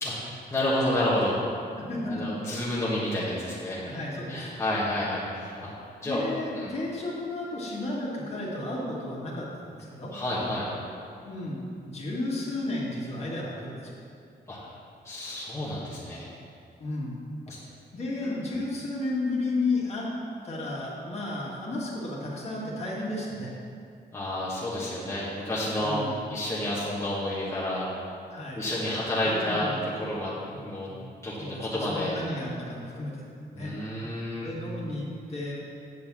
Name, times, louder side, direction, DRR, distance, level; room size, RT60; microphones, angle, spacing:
voice 1, 0.0-1.4 2.0-3.8 4.3-5.7 6.0-6.2 6.5-6.7 10.1-10.7 14.5-14.7 15.0-16.3 17.5-17.6 18.2-18.4 24.1-26.0 26.3-27.9 28.5-30.9 31.2-32.2 33.5-34.5, left 1 dB, 15° left, -8 dB, 1.3 m, -30 dB
voice 2, 1.8-2.3 3.8-4.5 6.0-10.1 11.2-11.6 11.8-13.9 16.8-17.1 17.5-17.6 17.9-20.1 20.4-23.5 25.8-26.1 28.3-28.6 29.2-29.9 30.5-30.6 30.9-31.0 31.4-33.2 33.6-33.7 34.4-35.5, left 2 dB, 40° left, -5 dB, 1.8 m, -33 dB
8.7 x 4.3 x 7.3 m, 2.4 s
wide cardioid pair, 165°, 17 cm